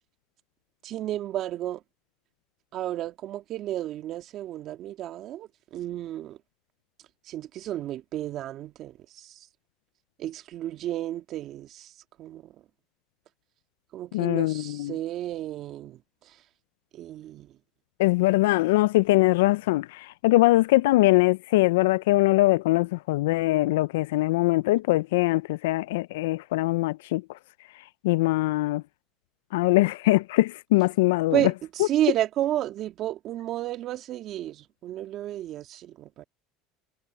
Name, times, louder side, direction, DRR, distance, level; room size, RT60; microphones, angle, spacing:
voice 1, 0.8-1.8 2.7-6.4 7.2-9.5 10.2-11.9 12.2-12.6 13.9-16.4 16.9-17.5 31.3-36.2, right 13 dB, 55° right, 2.1 m, -32 dB
voice 2, 14.1-14.9 18.0-27.4 28.0-28.8 29.5-31.4 31.8-31.9, left 19 dB, 85° left, 0.3 m, -22 dB
supercardioid pair, 95°, 0 cm